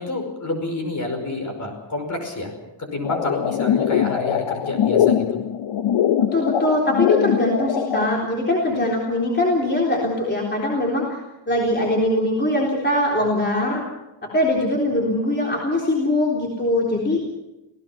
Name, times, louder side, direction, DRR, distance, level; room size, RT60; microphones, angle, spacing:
voice 1, 0.0-2.5 2.8-5.3, left 2 dB, 40° left, 5 dB, 5.3 m, -28 dB
sound 1, 3.0-8.1, left 9 dB, 80° left, 1.0 m, -21 dB
voice 2, 6.3-11.2 11.5-13.8 14.2-17.2, left 1 dB, 25° left, -3 dB, 3.7 m, -22 dB
27.5 x 17.5 x 5.8 m, 0.97 s
wide cardioid pair, 155°, 45 cm